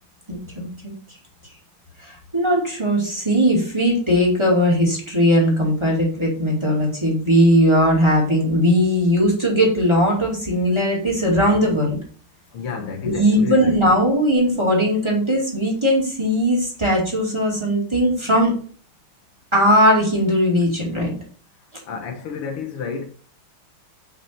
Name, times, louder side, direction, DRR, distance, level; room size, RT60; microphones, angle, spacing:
voice 1, 0.3-0.9 2.1-12.0 13.1-18.5 19.5-21.1, equal, 15° right, 2.4 m, -19 dB
voice 2, 12.5-13.8 21.9-23.0, left 5 dB, 85° left, 2.1 m, -30 dB
6.2 x 5.5 x 4.4 m
omnidirectional pair, 2.4 m